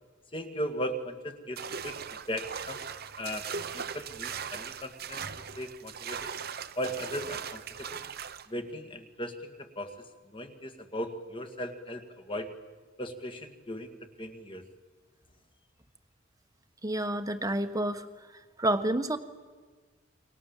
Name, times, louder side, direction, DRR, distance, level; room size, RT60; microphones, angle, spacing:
voice 1, 0.3-2.0 2.3-2.8 3.2-3.5 3.7-5.2 5.6-6.3 6.8-8.0 8.5-9.9 10.3-12.5 13.0-14.6, equal, 25° left, 7 dB, 2.1 m, -37 dB
sound 1, 1.6-8.5, right 6 dB, 50° right, 1.0 m, -39 dB
voice 2, 16.8-18.1 18.6-19.2, right 1 dB, 20° right, 9 dB, 1.3 m, -29 dB
28.5 x 24.0 x 7.4 m, 1.4 s
head